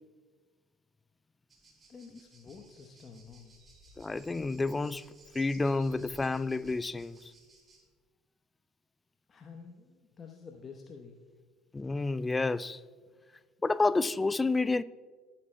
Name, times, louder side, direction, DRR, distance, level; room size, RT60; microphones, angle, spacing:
sound 1, 1.5-7.8, right 1 dB, 30° right, 2.5 m, -60 dB
voice 1, 1.9-3.6 9.3-11.2, left 5 dB, 35° left, 0.9 m, -49 dB
sound 2, 3.5-6.5 7.4-7.5, right 6 dB, 60° right, 2.1 m, -62 dB
voice 2, 4.0-7.3 11.7-12.8 13.6-14.8, left 3 dB, 20° left, 0.3 m, -30 dB
19.5 x 8.5 x 2.2 m
figure-of-eight pair, 60°, 0 cm